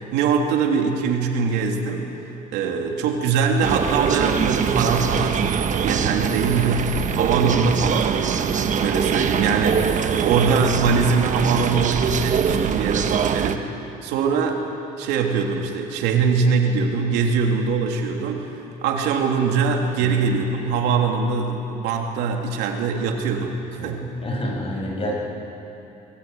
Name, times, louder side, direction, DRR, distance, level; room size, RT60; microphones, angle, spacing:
voice 1, 0.0-2.1 2.5-13.6 14.0-14.7 15.0-18.5 18.8-23.5 23.8-24.1, right 5 dB, 90° right, 2 dB, 3.1 m, -22 dB
sound 1, 3.6-13.6, right 7 dB, 45° right, 1.3 m, -23 dB
voice 2, 23.8-25.1, equal, 35° left, -1 dB, 7.3 m, -29 dB
24.5 x 21.0 x 9.4 m, 2.9 s
cardioid pair, 110°, 17 cm